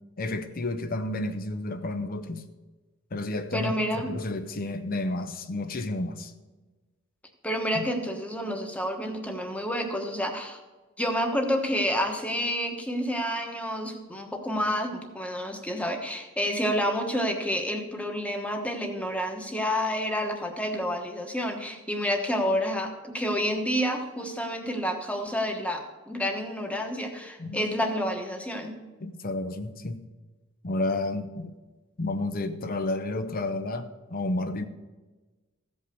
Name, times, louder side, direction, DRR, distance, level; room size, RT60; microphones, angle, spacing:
voice 1, 0.2-2.4 3.1-3.8 4.0-6.3 7.7-7.8 27.4-27.7 29.0-30.1 30.6-31.5 32.0-34.7, left 2 dB, 45° left, 9 dB, 0.7 m, -31 dB
voice 2, 3.5-4.1 7.4-10.6 11.0-28.8, equal, 5° left, 4 dB, 1.2 m, -29 dB
14.5 x 5.4 x 6.8 m, 1.2 s
head